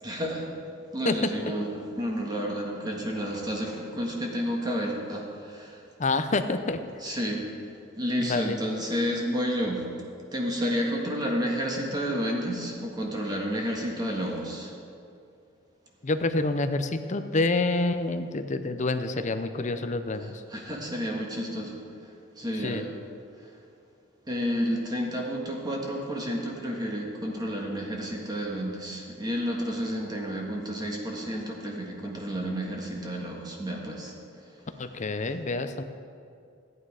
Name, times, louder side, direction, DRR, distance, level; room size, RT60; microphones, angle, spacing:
voice 1, 0.0-0.5 0.9-5.8 7.0-7.5 8.0-9.9 10.3-14.7 20.2-21.7 22.0-22.9 23.4-23.5 24.3-34.5, equal, 20° right, -1 dB, 1.6 m, -31 dB
voice 2, 6.0-6.8 8.3-8.6 16.0-20.4 22.6-22.8 34.8-35.8, left 2 dB, 35° left, 9 dB, 0.6 m, -27 dB
14.0 x 9.6 x 4.9 m, 2.4 s
head